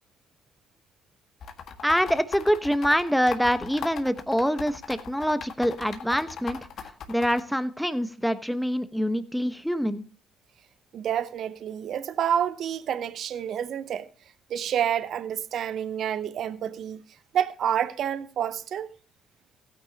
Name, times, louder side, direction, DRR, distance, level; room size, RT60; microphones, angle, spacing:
sound 1, 1.4-7.4, left 7 dB, 60° left, 1.6 m, -38 dB
voice 1, 1.8-6.6 7.1-10.0, equal, ahead, 1.1 m, -25 dB
voice 2, 10.9-14.1 14.5-17.0 17.3-18.9, right 9 dB, 60° right, 0.7 m, -28 dB
16.0 x 9.3 x 2.8 m
hypercardioid pair, 55°, 0 cm